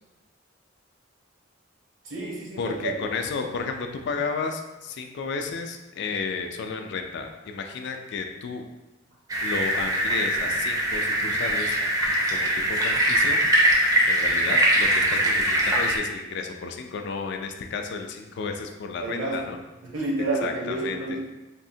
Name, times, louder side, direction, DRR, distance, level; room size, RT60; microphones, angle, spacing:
voice 1, 2.0-3.0 19.0-19.5 19.8-21.2, right 2 dB, 75° right, -3 dB, 0.7 m, -29 dB
voice 2, 2.6-8.7 9.4-11.8 12.3-13.4 14.1-19.6 20.4-21.2, left 4 dB, 60° left, 4 dB, 0.3 m, -32 dB
sound 1, 9.3-16.0, right 1 dB, 20° right, 0.4 m, -22 dB
3.5 x 2.0 x 2.6 m, 1.0 s
head